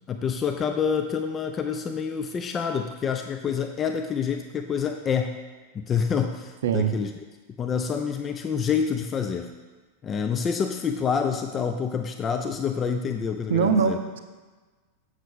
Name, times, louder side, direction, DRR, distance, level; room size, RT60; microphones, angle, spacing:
voice 1, 0.1-5.4 5.7-7.1 7.6-9.5 10.0-14.0, left 6 dB, 25° left, 6 dB, 0.4 m, -27 dB
voice 2, 6.6-6.9 13.5-14.2, right 7 dB, 60° right, 8 dB, 0.5 m, -22 dB
7.5 x 6.4 x 3.6 m, 1.3 s
figure-of-eight pair, 90°, 0 cm